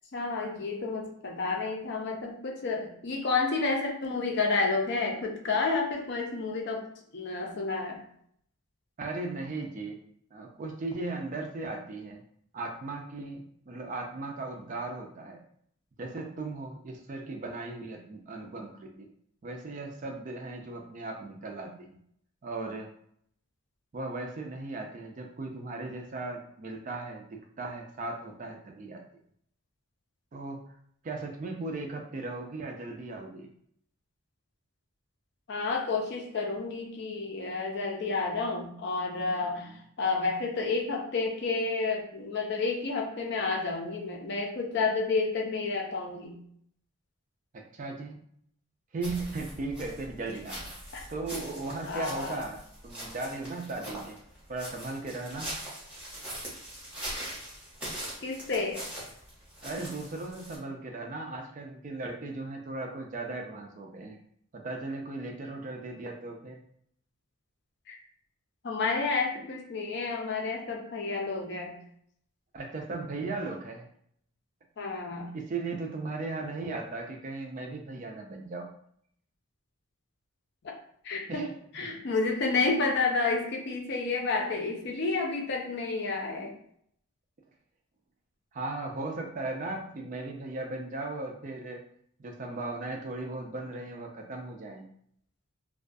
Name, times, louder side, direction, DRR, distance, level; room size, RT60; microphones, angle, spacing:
voice 1, 0.1-6.9 7.1-8.0 35.5-46.4 50.9-51.0 51.9-52.4 58.2-58.9 67.9-68.0 68.6-71.8 74.8-75.3 80.6-80.7 81.0-81.5 81.7-86.5, left 3 dB, 50° left, 1 dB, 0.5 m, -30 dB
voice 2, 9.0-10.0 10.3-12.2 12.5-15.4 16.0-19.1 19.4-21.9 22.4-22.9 23.9-29.0 30.3-30.6 31.0-33.5 39.4-39.5 47.5-48.2 48.9-50.7 51.1-54.2 54.5-55.5 59.6-64.2 64.5-66.6 72.5-73.9 75.2-78.7 81.3-81.9 88.5-91.8 92.2-94.9, right 3 dB, 35° right, 2 dB, 0.3 m, -37 dB
sound 1, 49.0-60.6, right 1 dB, 5° right, 0.7 m, -42 dB
2.3 x 2.2 x 2.5 m, 0.67 s
head